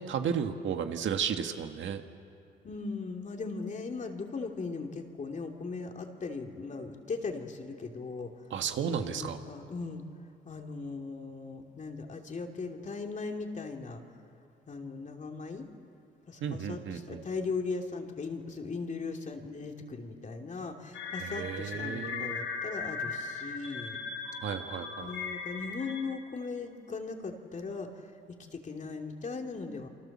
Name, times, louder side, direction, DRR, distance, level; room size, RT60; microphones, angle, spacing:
voice 1, 0.0-2.0 8.5-9.4 16.4-17.2 21.2-22.4 24.4-25.1, right 7 dB, 70° right, 6 dB, 1.8 m, -33 dB
voice 2, 2.6-8.3 9.0-10.0 10.4-14.0 14.7-15.7 16.3-24.0 25.0-29.9, left 4 dB, 40° left, 3 dB, 3.0 m, -38 dB
sound 1, 20.9-26.0, left 5 dB, 80° left, 7.0 m, -38 dB
29.0 x 25.0 x 7.5 m, 2.5 s
cardioid pair, 90°, 20 cm